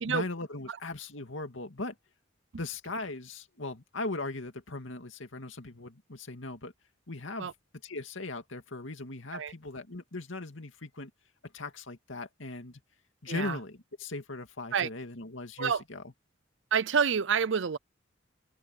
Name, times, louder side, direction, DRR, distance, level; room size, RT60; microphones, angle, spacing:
voice 1, 0.1-2.0 2.6-6.7 7.1-7.5 7.8-11.1 11.5-12.8 13.2-16.0, left 2 dB, 85° left, 2.4 m, -39 dB
voice 2, 13.3-13.6 14.7-14.9 15.6-15.8 16.7-17.8, right 6 dB, 75° right, 0.6 m, -28 dB
open air
head